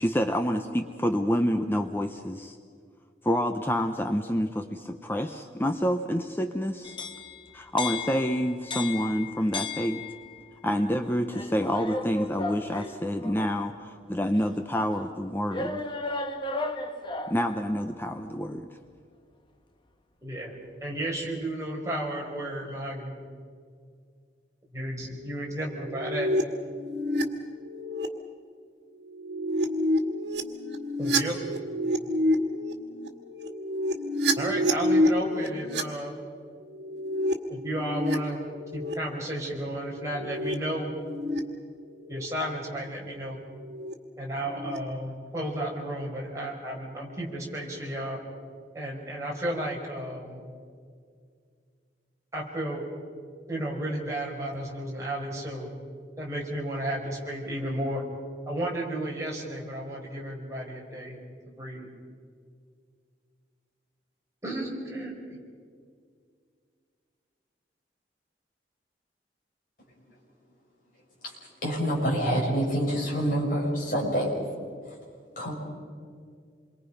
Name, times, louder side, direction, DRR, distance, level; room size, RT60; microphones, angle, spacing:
voice 1, 0.0-2.6 3.2-7.0 7.5-10.0 10.6-15.8 17.3-18.8, equal, 10° left, 6 dB, 0.7 m, -28 dB
sound 1, 6.8-10.5 11.3-13.6 14.3-14.4 15.5-17.5, left 3 dB, 30° left, 1.2 m, -35 dB
voice 2, 20.2-20.5 20.8-23.1 24.7-26.3 31.0-31.3 34.3-36.1 37.5-38.5 38.7-40.9 42.1-43.4 44.2-48.2 48.7-50.4 52.3-52.8 53.5-55.7 56.2-58.0 58.5-61.2 61.5-61.9 64.4-65.1, right 1 dB, 15° right, -3 dB, 4.8 m, -33 dB
sound 2, 25.7-27.2 27.6-28.1 29.1-35.8 36.7-38.2 38.5-38.9 40.0-40.5 40.8-41.4 42.1-42.2 43.6-43.9 44.4-44.8, equal, 75° right, 2.0 m, -28 dB
voice 3, 71.6-74.3 75.4-75.5, equal, 50° left, -3 dB, 6.4 m, -26 dB
27.5 x 23.0 x 5.6 m, 2.1 s
head